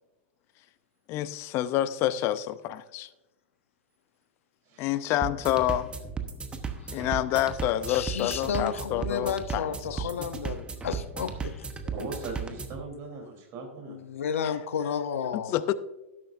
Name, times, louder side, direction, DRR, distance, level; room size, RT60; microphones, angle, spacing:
voice 1, 1.1-3.1 4.8-5.9 6.9-10.1 15.3-15.7, left 13 dB, 40° left, 15 dB, 0.6 m, -28 dB
sound 1, 5.2-12.8, right 5 dB, 15° right, 1.0 m, -36 dB
voice 2, 6.8-7.2 7.9-12.1 13.9-15.6, left 7 dB, 85° left, 11 dB, 0.8 m, -33 dB
voice 3, 11.9-14.0, right 3 dB, 40° right, 2 dB, 3.5 m, -39 dB
13.0 x 11.0 x 2.6 m, 1.0 s
hypercardioid pair, 125°, 7 cm